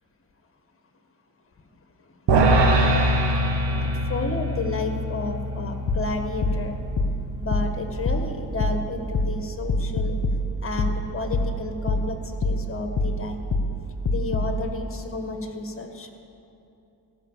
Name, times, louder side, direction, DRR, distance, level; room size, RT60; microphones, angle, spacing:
sound 1, 2.3-8.7, right 1 dB, 70° right, 1.7 m, -24 dB
voice 1, 4.1-6.7 7.4-10.2 10.6-12.2 12.4-13.4 14.1-16.1, left 3 dB, 30° left, 5 dB, 1.6 m, -31 dB
sound 2, 5.9-14.6, left 1 dB, 50° left, 1.2 m, -26 dB
16.5 x 5.7 x 7.4 m, 2.8 s
cardioid pair, 65°, 43 cm